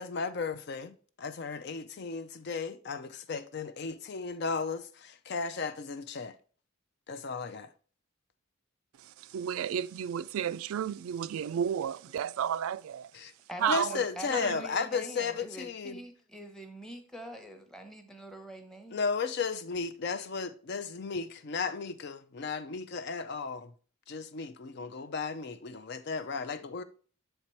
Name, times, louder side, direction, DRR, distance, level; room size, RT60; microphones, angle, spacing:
voice 1, 0.0-6.4 7.1-7.7 13.1-13.3 13.7-16.0 18.9-23.7 24.1-26.8, left 5 dB, 50° left, 0.4 m, -35 dB
voice 2, 9.0-13.1 13.6-14.0 14.3-14.6, right 8 dB, 80° right, 0.3 m, -32 dB
voice 3, 13.5-19.0, equal, 5° left, 0.8 m, -44 dB
6.8 x 4.4 x 4.4 m
head